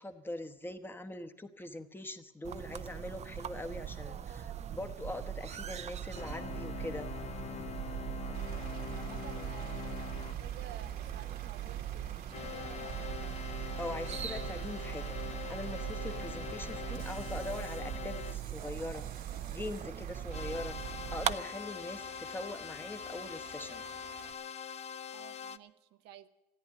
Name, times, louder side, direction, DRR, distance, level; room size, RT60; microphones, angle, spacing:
voice 1, 0.0-7.1 13.8-15.2 15.5-19.1 19.5-20.8 21.1-23.8, left 2 dB, 10° left, 7 dB, 1.0 m, -42 dB
sound 1, 2.4-21.3, right 10 dB, 40° right, 0.5 m, -40 dB
sound 2, 6.1-10.4 12.3-18.4 20.3-25.6, left 9 dB, 40° left, 0.5 m, -43 dB
Bus / Idling, 8.3-24.3, right 8 dB, 65° right, 1.4 m, -52 dB
voice 2, 8.5-13.4 25.1-26.3, right 11 dB, 85° right, 9 dB, 0.8 m, -53 dB
14.5 x 9.8 x 9.7 m, 1.0 s
cardioid pair, 110°, 17 cm